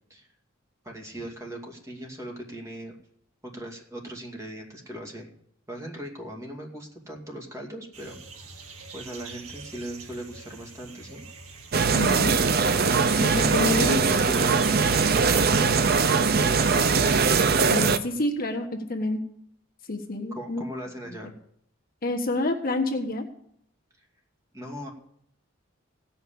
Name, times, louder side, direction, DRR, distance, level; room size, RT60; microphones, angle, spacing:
voice 1, 0.8-3.0 3.5-5.3 5.7-8.2 8.9-11.2 13.3-15.8 16.1-17.0 20.3-21.3 24.0-24.1 24.5-24.9, right 1 dB, 15° right, 1 dB, 2.3 m, -39 dB
sound 1, 7.9-16.9, right 4 dB, 85° right, 2.1 m, -44 dB
sound 2, 11.7-18.0, right 5 dB, 45° right, 0.7 m, -21 dB
voice 2, 11.9-12.4 13.2-14.0 17.7-19.2 19.9-20.6 22.0-23.3, left 2 dB, 45° left, 3 dB, 1.2 m, -28 dB
16.0 x 5.8 x 8.6 m, 0.69 s
head